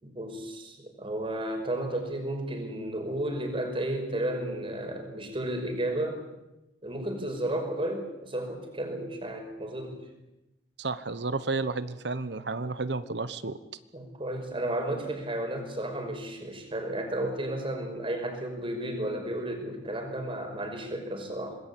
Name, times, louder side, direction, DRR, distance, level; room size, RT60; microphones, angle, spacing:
voice 1, 0.0-6.2 6.8-10.0 13.9-21.6, right 1 dB, 30° right, 4 dB, 5.6 m, -33 dB
voice 2, 10.8-13.6, right 3 dB, 70° right, 13 dB, 1.1 m, -31 dB
25.5 x 20.5 x 8.5 m, 0.97 s
head